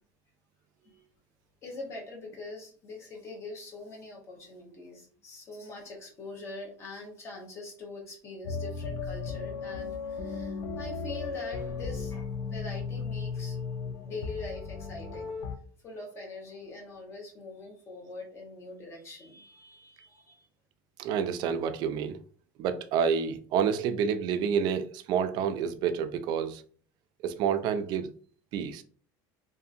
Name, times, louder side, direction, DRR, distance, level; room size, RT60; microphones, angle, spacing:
voice 1, 1.6-13.6 14.0-15.3 15.8-20.5, left 2 dB, 30° left, 0.9 m, -43 dB
sound 1, 8.4-15.6, left 5 dB, 50° left, 0.4 m, -35 dB
voice 2, 21.0-22.2 22.6-26.6 27.2-28.1 28.5-28.8, right 7 dB, 50° right, 0.3 m, -28 dB
2.7 x 2.5 x 2.5 m
cardioid pair, 160°, 9 cm